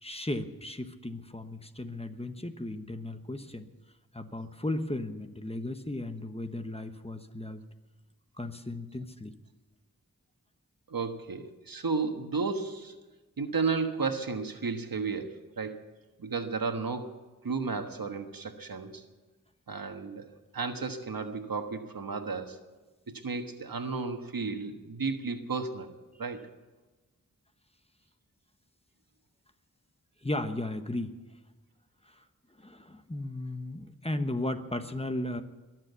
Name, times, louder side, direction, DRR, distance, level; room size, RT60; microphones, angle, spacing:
voice 1, 0.0-3.7 4.1-7.6 8.4-9.4 30.2-31.1 32.6-35.4, left 1 dB, 15° left, 8 dB, 1.1 m, -35 dB
voice 2, 10.9-12.9 13.4-15.8 16.2-17.2 17.4-19.0 19.7-22.6 23.1-25.9 26.2-26.4, right 4 dB, 85° right, 6 dB, 1.4 m, -33 dB
21.5 x 7.6 x 8.1 m, 1.2 s
wide cardioid pair, 50°, 34 cm